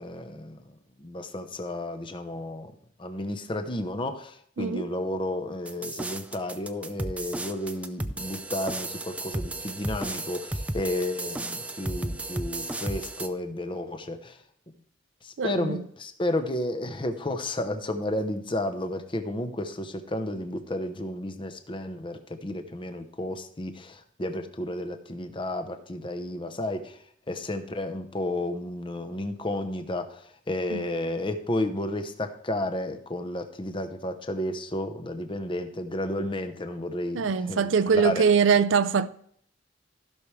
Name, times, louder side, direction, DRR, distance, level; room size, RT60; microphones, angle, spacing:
voice 1, 0.0-2.7 3.0-14.4 15.2-27.0 27.3-38.2, left 1 dB, 25° left, 0.8 m, -32 dB
sound 1, 5.7-13.3, right 1 dB, 5° right, 0.4 m, -34 dB
voice 2, 15.4-15.8 30.7-30.8 37.1-39.1, right 6 dB, 80° right, 0.5 m, -22 dB
15.5 x 6.1 x 3.2 m
head